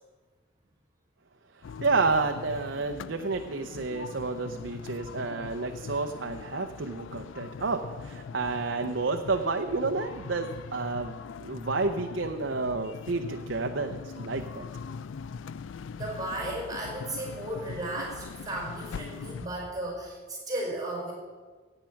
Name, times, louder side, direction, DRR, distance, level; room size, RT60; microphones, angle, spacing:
sound 1, 1.6-19.5, left 5 dB, 70° left, 0.3 m, -41 dB
voice 1, 1.8-14.7, right 3 dB, 65° right, 4 dB, 0.7 m, -30 dB
voice 2, 15.9-21.1, right 1 dB, 20° right, -1 dB, 4.3 m, -35 dB
15.5 x 8.9 x 5.9 m, 1.4 s
head